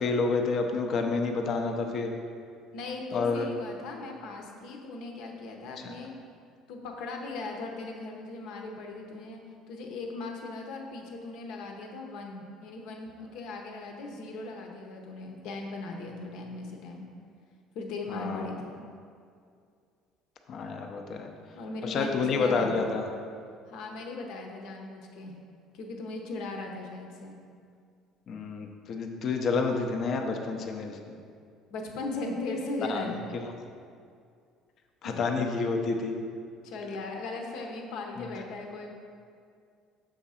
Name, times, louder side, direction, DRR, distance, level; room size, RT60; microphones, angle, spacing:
voice 1, 0.0-2.2 3.1-3.5 18.1-18.5 20.5-21.3 21.8-23.1 28.3-31.2 32.9-33.1 35.0-36.1 38.2-38.3, left 4 dB, 45° left, 3 dB, 0.7 m, -29 dB
voice 2, 2.7-6.1 6.7-9.4 9.7-17.1 17.7-18.8 21.5-22.9 23.7-25.3 25.7-27.4 31.7-33.1 35.0-35.2 36.6-38.9, left 2 dB, 70° left, 2 dB, 0.9 m, -38 dB
7.0 x 3.7 x 5.7 m, 2.3 s
cardioid pair, 130°, 0 cm